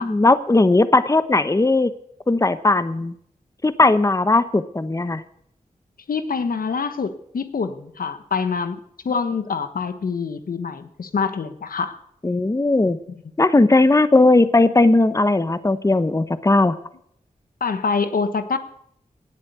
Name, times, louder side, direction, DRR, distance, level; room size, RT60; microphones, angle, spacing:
voice 1, 0.0-1.9 2.3-3.1 3.6-5.2 12.2-13.0 13.4-16.7, left 2 dB, 20° left, 12 dB, 1.0 m, -17 dB
voice 2, 6.1-8.8 9.0-12.0 17.6-18.6, left 5 dB, 80° left, 10 dB, 1.3 m, -25 dB
18.5 x 8.2 x 8.1 m, 0.69 s
cardioid pair, 60°, 15 cm